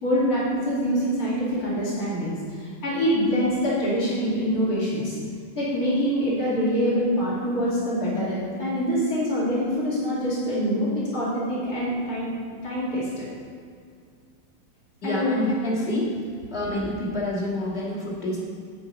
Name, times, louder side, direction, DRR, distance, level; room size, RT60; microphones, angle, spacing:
voice 1, 0.0-5.2 5.5-13.3 15.0-15.4, equal, 50° left, -8 dB, 3.1 m, -25 dB
voice 2, 15.0-16.1 16.5-18.4, left 1 dB, 35° left, -5 dB, 2.4 m, -27 dB
8.6 x 7.8 x 5.4 m, 2.2 s
omnidirectional pair, 2.0 m